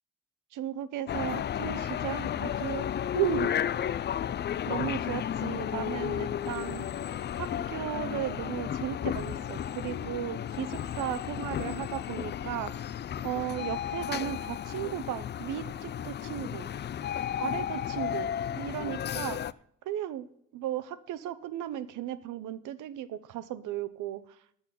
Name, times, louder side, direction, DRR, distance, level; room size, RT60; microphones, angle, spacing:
voice 1, 0.5-2.8 3.1-3.5 4.7-6.8 7.4-12.7 13.2-16.7 17.4-19.4 19.8-20.3 20.5-24.4, right 12 dB, 85° right, 14 dB, 0.8 m, -35 dB
sound 1, 1.1-19.5, left 9 dB, 35° left, 0.4 m, -33 dB
12.5 x 4.2 x 7.6 m, 0.68 s
cardioid pair, 90°, 30 cm